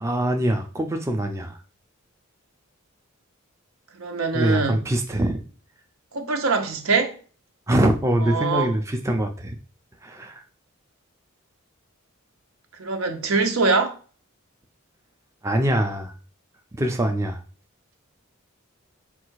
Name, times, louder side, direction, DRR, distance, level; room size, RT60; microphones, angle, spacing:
voice 1, 0.0-1.6 4.3-5.4 7.7-9.6 10.0-10.4 15.4-16.1 16.8-17.4, right 1 dB, 15° right, 0.4 m, -23 dB
voice 2, 4.0-4.8 6.1-7.1 8.2-8.7 12.8-13.9, right 4 dB, 85° right, 0.8 m, -23 dB
4.3 x 2.4 x 4.6 m
head